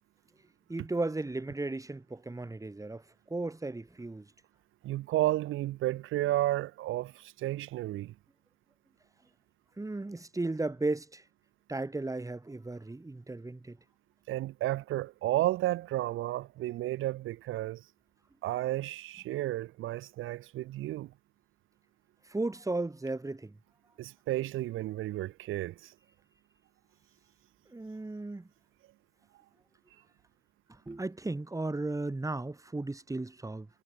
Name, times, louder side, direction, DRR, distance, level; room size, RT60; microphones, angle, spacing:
voice 1, 0.7-4.3 9.8-11.2 11.7-13.8 22.2-23.6 27.7-28.5 30.7-33.7, right 2 dB, 15° right, 5.7 m, -35 dB
voice 2, 4.8-8.1 14.3-17.8 18.4-21.1 24.0-25.9, right 15 dB, 90° right, 4.7 m, -32 dB
cardioid pair, 90°, 20 cm